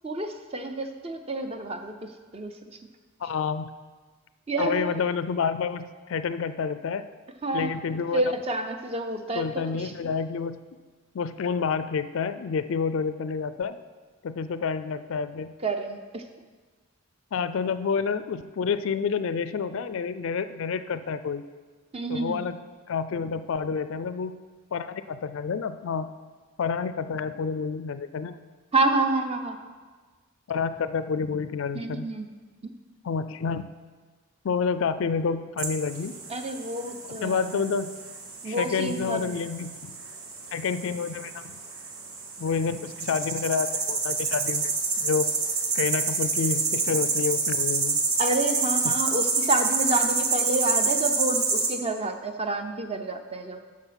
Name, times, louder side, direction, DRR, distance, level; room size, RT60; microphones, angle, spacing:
voice 1, 0.0-2.8 4.5-5.0 7.4-7.8 8.1-9.9 15.6-16.3 21.9-22.4 28.7-29.6 31.7-32.3 36.3-37.6 38.4-39.3 48.2-53.6, right 2 dB, 30° right, 6 dB, 0.5 m, -29 dB
voice 2, 3.2-3.7 4.6-7.1 7.5-8.2 9.3-10.6 11.1-13.8 14.2-15.5 17.3-21.4 22.1-22.6 22.9-24.4 24.7-26.1 26.6-28.4 30.5-32.1 33.0-33.7 34.4-36.2 37.1-37.9 38.4-39.9 40.5-41.6 42.4-45.3 45.7-48.0 48.8-49.0, left 5 dB, 65° left, 12 dB, 0.4 m, -29 dB
sound 1, 35.6-51.7, right 4 dB, 80° right, 1.3 m, -28 dB
7.9 x 6.4 x 5.8 m, 1.4 s
head